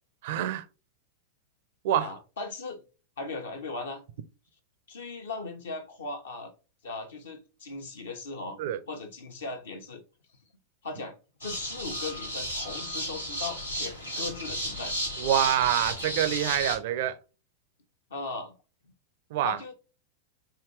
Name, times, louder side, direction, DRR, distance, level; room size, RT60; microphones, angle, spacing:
voice 1, 0.2-0.7 1.8-2.1 8.6-8.8 15.2-17.2 19.3-19.6, right 11 dB, 50° right, 0.5 m, -26 dB
voice 2, 2.0-2.8 3.2-4.0 4.9-6.5 6.8-8.6 8.9-10.0 10.8-11.1 11.4-14.9 18.1-18.6 19.4-19.7, left 3 dB, 65° left, 1.0 m, -38 dB
sound 1, 11.4-16.8, equal, 85° left, 1.1 m, -33 dB
4.8 x 2.8 x 3.1 m
figure-of-eight pair, 90°, 0 cm